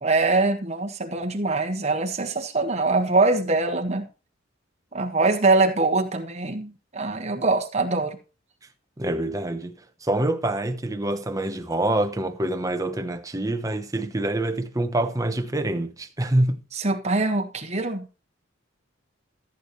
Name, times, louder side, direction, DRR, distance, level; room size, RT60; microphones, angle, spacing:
voice 1, 0.0-4.1 4.9-8.2 16.7-18.1, right 3 dB, 35° right, 1.4 m, -23 dB
voice 2, 9.0-9.7 10.0-16.6, right 1 dB, 15° right, 0.8 m, -26 dB
14.5 x 8.3 x 3.1 m
head